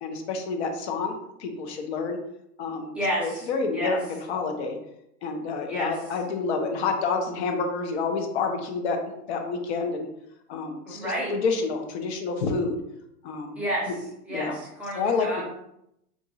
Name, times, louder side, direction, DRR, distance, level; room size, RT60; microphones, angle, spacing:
voice 1, 0.0-2.2 2.6-2.9 3.2-4.8 5.2-9.0 9.3-10.1 10.5-12.8 13.2-13.6 14.3-14.6 15.0-15.3, left 4 dB, 45° left, 4 dB, 0.6 m, -28 dB
voice 2, 2.9-4.0 5.7-6.0 10.9-11.3 13.6-13.9 14.3-15.5, equal, 5° right, -6 dB, 0.6 m, -30 dB
2.9 x 2.6 x 3.6 m, 0.80 s
hypercardioid pair, 120°, 48 cm